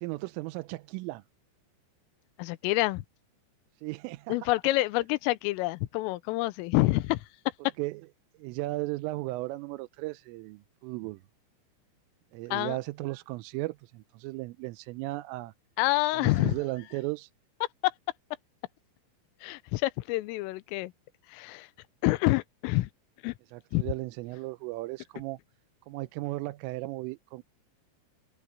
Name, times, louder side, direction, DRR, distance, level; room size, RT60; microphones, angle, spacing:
voice 1, 0.0-1.2 3.8-4.4 7.8-8.0 8.4-11.2 12.3-15.5 16.1-17.3 23.5-25.4 25.9-27.4, right 20 dB, 90° right, 3.3 m, -36 dB
voice 2, 2.4-3.0 4.3-7.2 12.5-12.8 15.8-16.5 17.8-17.9 19.4-20.9 21.3-21.7 22.0-22.9 23.2-23.3 23.7-23.8, left 20 dB, 85° left, 3.3 m, -27 dB
open air
omnidirectional pair, 5.7 m